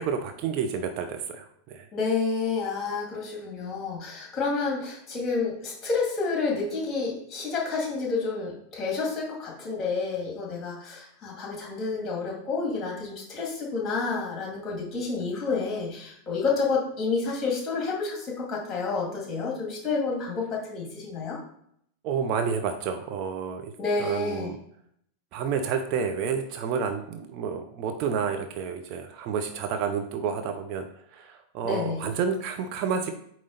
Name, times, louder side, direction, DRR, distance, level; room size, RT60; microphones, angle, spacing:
voice 1, 0.0-1.8 22.0-23.7 24.0-24.6 25.3-30.9 31.1-33.1, right 6 dB, 40° right, 4 dB, 0.7 m, -30 dB
voice 2, 1.9-21.4 23.8-24.5 31.6-32.1, left 4 dB, 25° left, -1 dB, 2.2 m, -29 dB
8.5 x 3.1 x 4.0 m, 0.70 s
figure-of-eight pair, 90°, 0 cm